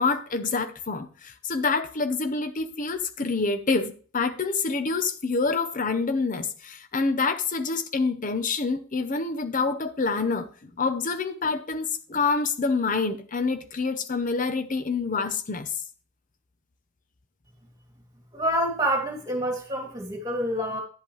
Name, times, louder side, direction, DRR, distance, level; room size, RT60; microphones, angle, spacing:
voice 1, 0.0-15.7, left 4 dB, 40° left, 0.8 m, -27 dB
voice 2, 18.3-20.8, equal, 15° right, 2.5 m, -27 dB
10.5 x 8.1 x 3.2 m
head